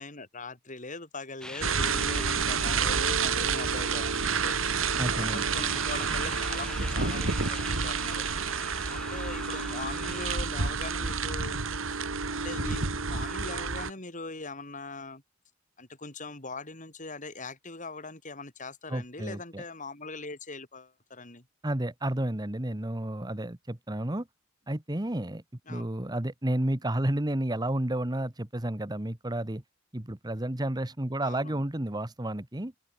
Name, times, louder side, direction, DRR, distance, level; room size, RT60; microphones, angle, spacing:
voice 1, 0.0-4.6 5.1-11.6 11.9-12.0 12.3-15.2 15.8-21.5 25.7-25.9 31.2-31.6, left 3 dB, 40° left, 5.3 m, -41 dB
sound 1, 1.4-10.4, left 1 dB, 5° left, 3.6 m, -44 dB
sound 2, 1.6-13.9, right 5 dB, 80° right, 2.0 m, -29 dB
voice 2, 5.0-5.4 18.9-19.6 21.6-24.3 24.7-25.4 25.7-29.6 29.9-32.7, right 1 dB, 20° right, 1.3 m, -31 dB
head